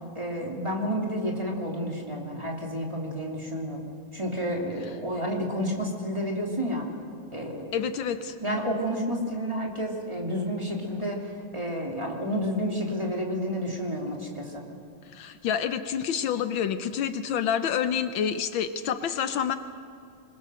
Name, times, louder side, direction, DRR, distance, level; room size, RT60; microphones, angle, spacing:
voice 1, 0.1-3.9 4.1-6.9 7.3-7.8 8.4-14.6, equal, 15° right, -1 dB, 2.9 m, -30 dB
voice 2, 7.7-8.3 15.1-19.6, left 8 dB, 75° left, 10 dB, 1.5 m, -28 dB
25.5 x 21.5 x 6.4 m, 2.4 s
omnidirectional pair, 2.2 m